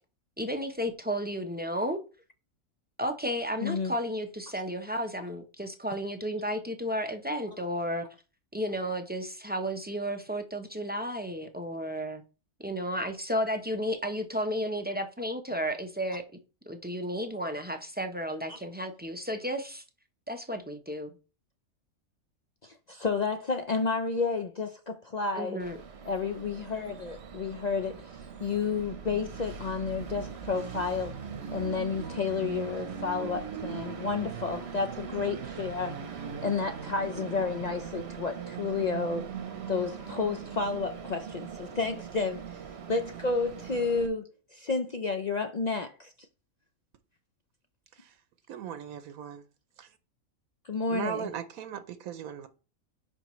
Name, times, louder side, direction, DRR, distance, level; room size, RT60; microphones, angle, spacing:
voice 1, 0.4-2.0 3.0-8.1 8.5-12.2 12.6-16.2 16.7-19.8 20.3-21.1 25.3-25.8, equal, 15° right, 0.3 m, -33 dB
voice 2, 3.6-3.9 18.5-18.6 22.6-25.6 26.1-31.2 31.5-35.9 36.4-39.3 39.7-42.6 42.9-46.1 50.6-51.3, left 4 dB, 70° left, 0.4 m, -31 dB
Train, 25.6-44.1, right 7 dB, 55° right, 1.0 m, -40 dB
voice 3, 48.5-49.4 49.8-49.9 50.9-52.5, right 9 dB, 80° right, 1.1 m, -37 dB
10.5 x 4.6 x 3.1 m
omnidirectional pair, 1.5 m